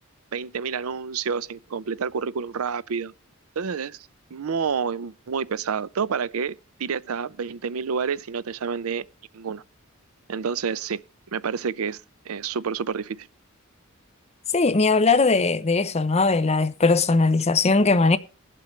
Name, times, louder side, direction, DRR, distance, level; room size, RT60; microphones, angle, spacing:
voice 1, 0.3-3.1 3.6-4.0 4.3-9.0 9.3-9.6 10.3-11.0 11.3-12.0 12.3-13.3, right 6 dB, 80° right, 0.5 m, -29 dB
voice 2, 14.5-18.2, left 3 dB, 30° left, 0.7 m, -19 dB
21.0 x 7.6 x 3.2 m
head